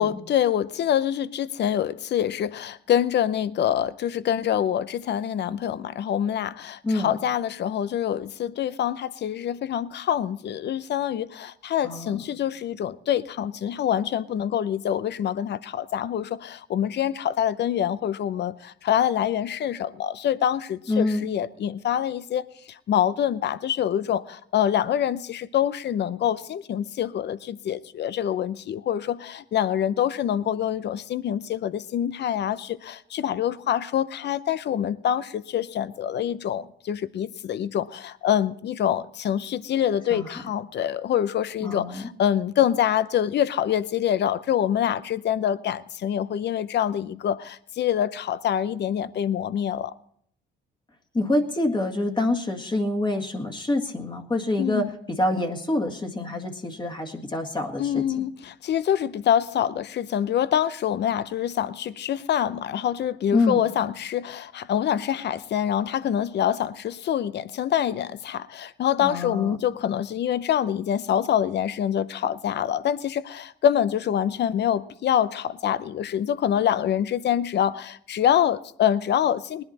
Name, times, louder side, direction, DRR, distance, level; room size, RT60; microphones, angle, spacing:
voice 1, 0.0-49.9 54.6-54.9 57.8-79.6, left 10 dB, 60° left, 0.7 m, -25 dB
voice 2, 11.8-12.2 20.9-21.3 40.1-40.3 41.6-42.1 51.1-58.0 63.3-63.6 69.0-69.6, left 2 dB, 25° left, 1.8 m, -26 dB
19.5 x 11.0 x 4.2 m
cardioid pair, 90°, 20 cm